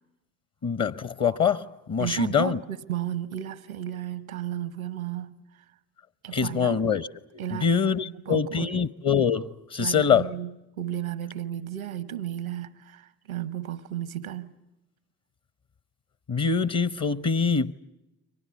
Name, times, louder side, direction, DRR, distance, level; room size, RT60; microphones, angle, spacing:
voice 1, 0.6-2.6 6.3-7.1 7.3-10.2 16.3-17.7, left 6 dB, 40° left, 0.9 m, -24 dB
voice 2, 2.0-5.6 6.2-6.8 7.4-7.8 8.2-8.7 9.8-14.6, right 11 dB, 90° right, 0.9 m, -34 dB
29.5 x 24.5 x 7.0 m
figure-of-eight pair, 45°, 41 cm